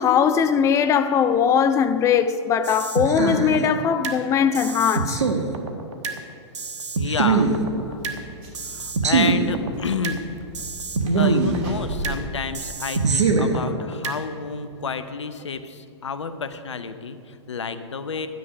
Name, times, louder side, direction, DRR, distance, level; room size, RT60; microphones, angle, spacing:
voice 1, 0.0-5.2, left 7 dB, 20° left, 0.5 m, -20 dB
sound 1, 2.6-4.2 4.5-6.2 6.5-8.2 8.5-10.2 10.5-12.2 12.5-14.2, right 4 dB, 80° right, 1.3 m, -23 dB
voice 2, 7.0-7.5 8.6-10.3 11.2-18.3, left 5 dB, 80° left, 0.8 m, -30 dB
sound 2, 7.2-12.3, right 1 dB, 45° right, 2.6 m, -38 dB
12.5 x 9.6 x 5.0 m
hypercardioid pair, 110°, 15 cm